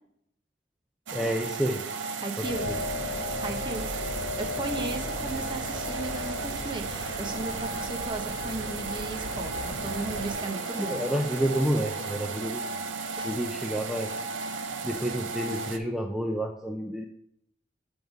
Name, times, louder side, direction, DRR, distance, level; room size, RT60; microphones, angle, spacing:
voice 1, 1.1-1.8 2.4-2.8 10.8-12.8 13.2-14.1 14.8-17.0, equal, ahead, 1 dB, 0.4 m, -29 dB
sound 1, 1.1-15.8, right 4 dB, 90° right, 0.6 m, -35 dB
voice 2, 2.2-2.7 3.4-3.9 4.4-11.0 13.2-13.3, right 3 dB, 25° right, 3 dB, 0.8 m, -36 dB
sound 2, 2.4-10.3, left 2 dB, 65° left, 1.2 m, -36 dB
sound 3, 2.4-12.5, equal, 15° left, 2.1 m, -44 dB
7.8 x 3.6 x 5.1 m, 0.74 s
head